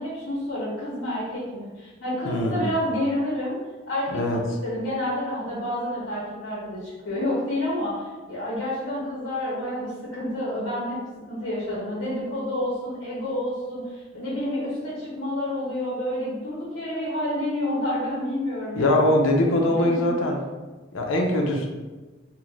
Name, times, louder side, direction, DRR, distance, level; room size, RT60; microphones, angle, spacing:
voice 1, 0.0-3.6 3.9-11.0 11.3-18.9 19.6-20.1, left 1 dB, 65° left, -7 dB, 0.8 m, -29 dB
voice 2, 2.2-2.7 4.1-4.4 18.8-20.4 20.9-21.7, left 1 dB, 85° left, 1 dB, 0.5 m, -22 dB
2.6 x 2.5 x 3.1 m, 1.2 s
head